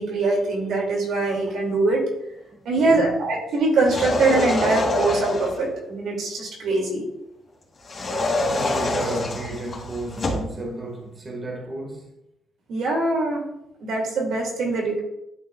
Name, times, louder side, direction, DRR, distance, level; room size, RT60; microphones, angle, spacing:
voice 1, 0.0-2.0 2.6-7.0 12.7-13.4 13.8-15.0, right 3 dB, 75° right, 2.8 m, -23 dB
voice 2, 2.8-3.2 8.4-12.1, right 1 dB, 35° right, 2.0 m, -32 dB
sound 1, 3.8-5.7 7.8-10.5, left 2 dB, 35° left, 2.8 m, -25 dB
11.5 x 5.6 x 2.5 m
cardioid pair, 90°, 0 cm